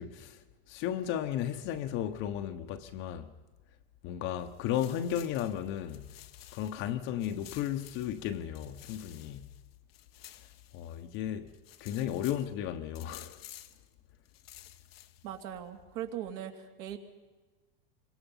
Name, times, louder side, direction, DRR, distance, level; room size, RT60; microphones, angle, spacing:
voice 1, 0.0-3.3 4.0-6.1 6.5-9.5 10.7-11.5 11.8-13.4, left 10 dB, 40° left, 1.2 m, -34 dB
sound 1, 4.4-6.9 7.2-11.2 11.5-12.5 12.9-13.9 14.2-15.4, left 13 dB, 85° left, 1.4 m, -53 dB
voice 2, 15.2-17.0, right 10 dB, 55° right, 2.8 m, -40 dB
27.5 x 24.5 x 5.7 m
supercardioid pair, 135°, 29 cm